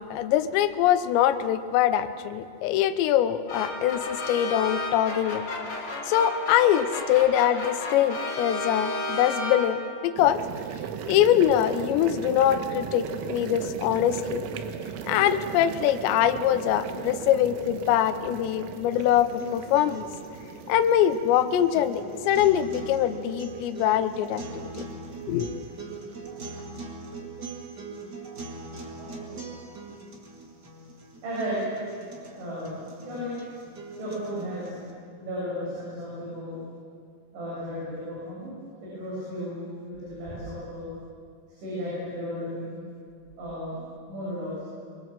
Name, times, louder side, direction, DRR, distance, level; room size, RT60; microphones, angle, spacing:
voice 1, 0.0-5.4 6.0-10.4 11.1-14.5 15.1-20.0 20.7-24.7 25.3-25.5, left 11 dB, 75° left, 10 dB, 2.9 m, -23 dB
sound 1, 3.5-10.0, left 2 dB, 40° left, 3.6 m, -32 dB
sound 2, 10.2-26.6, right 8 dB, 85° right, 3.7 m, -38 dB
sound 3, 18.9-34.9, right 3 dB, 45° right, 1.3 m, -41 dB
voice 2, 28.9-29.6 31.2-31.6 32.3-33.4 34.0-34.8 35.2-36.6 37.3-38.5 38.8-40.9 41.6-42.8 43.4-43.8 44.1-44.6, equal, 65° right, -8 dB, 10.0 m, -34 dB
24.0 x 23.5 x 7.5 m, 2.2 s
omnidirectional pair, 5.7 m